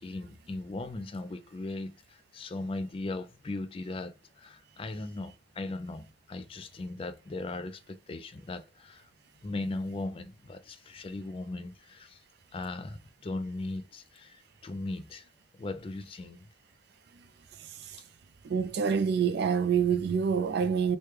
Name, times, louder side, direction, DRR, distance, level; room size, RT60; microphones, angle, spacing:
voice 1, 0.0-9.1 9.4-12.2 12.5-15.3 15.5-16.5, left 2 dB, 30° left, 0.4 m, -38 dB
voice 2, 18.4-21.0, right 6 dB, 60° right, 0.3 m, -26 dB
3.1 x 2.1 x 3.2 m
head